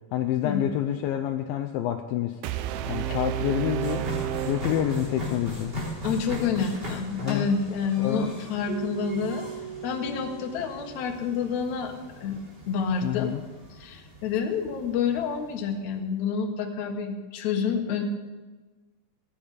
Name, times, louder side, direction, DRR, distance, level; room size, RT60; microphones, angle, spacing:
voice 1, 0.1-2.4 2.9-4.1 4.5-5.7 7.2-7.5 8.0-8.3 13.0-13.4, left 11 dB, 80° left, 6 dB, 2.2 m, -28 dB
sound 1, 2.4-5.5, right 12 dB, 80° right, 2.4 m, -31 dB
sound 2, 3.8-15.8, equal, 25° right, 3.8 m, -39 dB
voice 2, 6.0-9.5 9.8-13.3 13.7-18.0, left 6 dB, 60° left, 4 dB, 2.2 m, -28 dB
Keyboard (musical), 8.7-11.5, right 7 dB, 55° right, 0.5 m, -39 dB
17.0 x 10.5 x 5.0 m, 1.2 s
omnidirectional pair, 4.7 m